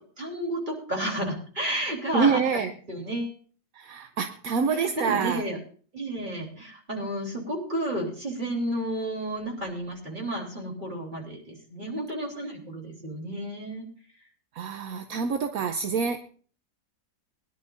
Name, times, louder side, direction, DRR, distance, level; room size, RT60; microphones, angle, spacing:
voice 1, 0.2-2.4 2.9-3.4 4.7-5.6 5.9-13.8, right 1 dB, 25° right, 0 dB, 3.5 m, -32 dB
voice 2, 2.1-2.7 3.8-5.4 14.6-16.2, right 5 dB, 60° right, 7 dB, 1.0 m, -26 dB
22.0 x 11.0 x 2.6 m, 0.43 s
omnidirectional pair, 2.0 m